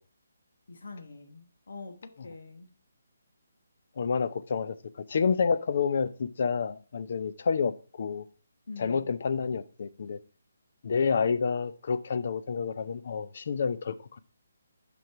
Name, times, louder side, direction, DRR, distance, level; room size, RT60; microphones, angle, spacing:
voice 1, 0.7-1.9 2.2-2.7 8.7-9.1, left 3 dB, 70° left, 1.2 m, -44 dB
voice 2, 4.0-4.7 5.1-8.3 8.8-10.2 10.8-13.9, left 5 dB, 55° left, 0.5 m, -29 dB
7.7 x 5.4 x 4.6 m
hypercardioid pair, 160°, 0 cm